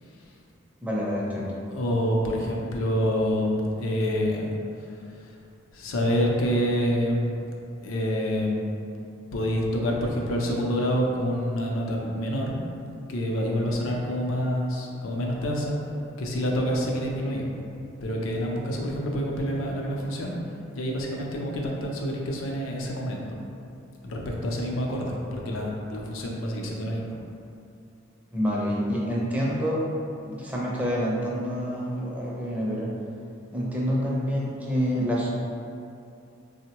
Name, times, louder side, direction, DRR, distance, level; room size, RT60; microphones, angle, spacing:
voice 1, 0.8-1.6 28.3-29.8 30.3-32.9 33.5-35.3, equal, 10° right, -6 dB, 0.4 m, -27 dB
voice 2, 1.7-4.5 5.7-7.2 7.8-8.7 9.3-12.5 13.1-15.8 16.2-17.4 18.0-20.3 20.7-23.2 24.0-27.2, equal, 85° left, -1 dB, 0.5 m, -27 dB
3.6 x 2.1 x 2.8 m, 2.6 s
head